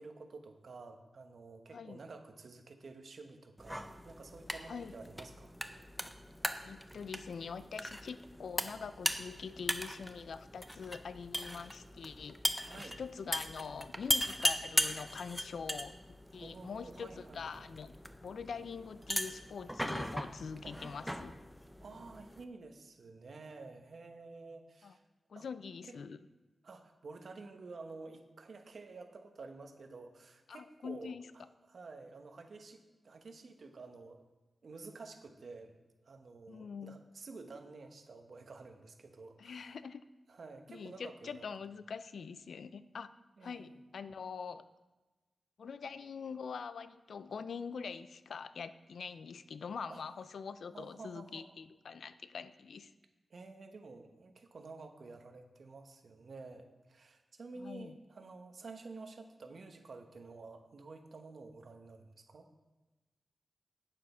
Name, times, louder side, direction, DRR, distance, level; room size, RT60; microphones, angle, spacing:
voice 1, 0.0-5.5 12.6-13.0 16.3-17.6 20.6-20.8 21.8-25.0 25.3-25.5 25.8-25.9 26.6-34.2 34.6-35.7 36.0-39.8 40.3-41.5 43.4-43.7 49.9-50.0 50.7-51.5 53.3-62.5, right 3 dB, 65° right, 5 dB, 1.1 m, -51 dB
sound 1, 3.6-22.4, equal, ahead, 0.6 m, -39 dB
voice 2, 6.6-12.4 12.7-16.0 16.3-21.3 24.8-24.9 25.3-26.2 30.5-31.3 36.5-37.0 39.4-40.0 40.7-43.1 43.4-44.7 45.6-52.9 57.6-58.0, left 6 dB, 85° left, 14 dB, 0.4 m, -44 dB
9.4 x 7.5 x 5.5 m, 1.2 s
wide cardioid pair, 110°, 0 cm